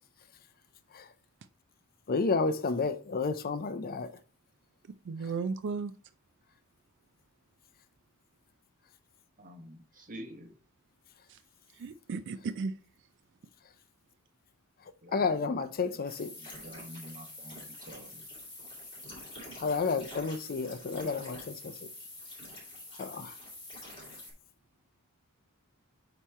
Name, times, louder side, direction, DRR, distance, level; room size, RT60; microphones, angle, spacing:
voice 1, 2.1-4.1 15.1-16.3 19.6-21.7 23.0-23.3, left 4 dB, 45° left, 0.5 m, -31 dB
voice 2, 5.1-5.9 11.3-11.4 11.7-12.8, right 4 dB, 60° right, 0.4 m, -35 dB
voice 3, 9.4-10.5 15.0-15.6 16.4-18.2, equal, 40° right, 1.1 m, -48 dB
sound 1, 16.1-24.3, left 1 dB, 25° left, 2.8 m, -46 dB
8.1 x 3.0 x 4.3 m
head